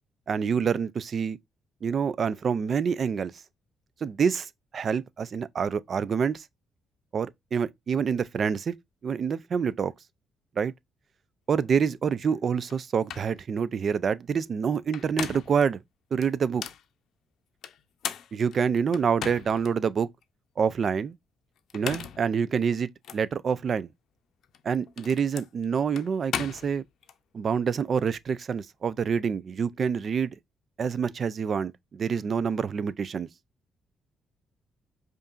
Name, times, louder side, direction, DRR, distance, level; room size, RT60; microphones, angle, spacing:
voice 1, 0.3-1.4 1.8-3.3 4.0-6.4 7.1-8.7 9.0-9.9 10.6-10.7 11.5-15.8 16.1-16.6 18.3-20.1 20.6-21.1 21.7-23.9 24.6-26.8 27.3-30.3 30.8-33.3, right 6 dB, 50° right, 0.4 m, -27 dB
sound 1, 12.7-12.8 13.1-13.3 14.8-15.6 16.2-16.8 17.6-19.7 20.2-20.3 21.6-22.3 23.0-23.2 24.4-27.2, left 9 dB, 70° left, 0.5 m, -37 dB
5.2 x 2.5 x 2.4 m
cardioid pair, 90°, 0 cm